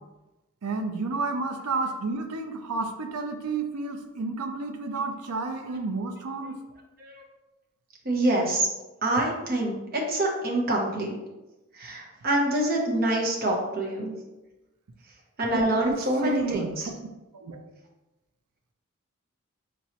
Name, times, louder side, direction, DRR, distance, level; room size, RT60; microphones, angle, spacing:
voice 1, 0.6-6.6 15.5-15.9 16.2-16.9 17.3-17.6, right 3 dB, 90° right, 5 dB, 0.5 m, -31 dB
voice 2, 8.0-8.7 9.0-11.2 11.7-14.1 15.4-16.9, right 1 dB, 40° right, -1 dB, 0.7 m, -26 dB
4.5 x 3.0 x 2.8 m, 1.0 s
head